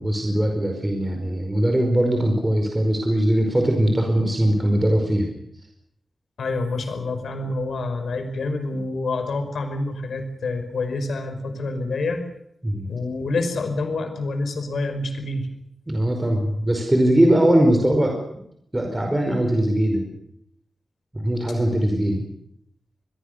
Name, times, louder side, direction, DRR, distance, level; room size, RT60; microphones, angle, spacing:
voice 1, 0.0-5.3 8.7-8.8 12.6-12.9 15.9-18.2 18.7-20.0 21.1-22.2, right 1 dB, 15° right, 3 dB, 4.9 m, -20 dB
voice 2, 6.4-12.2 12.9-15.5, left 3 dB, 80° left, 8 dB, 5.3 m, -27 dB
28.0 x 21.5 x 6.8 m, 0.74 s
wide cardioid pair, 105°, 0 cm